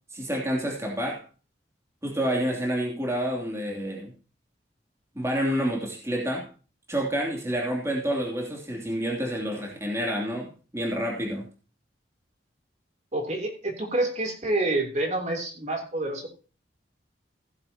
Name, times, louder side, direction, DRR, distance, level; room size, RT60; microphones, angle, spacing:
voice 1, 0.1-1.2 2.0-4.1 5.2-6.5 6.9-11.5, equal, 15° right, 0 dB, 2.9 m, -28 dB
voice 2, 13.1-16.3, right 2 dB, 40° right, 2 dB, 3.3 m, -28 dB
16.0 x 10.5 x 2.9 m, 0.35 s
head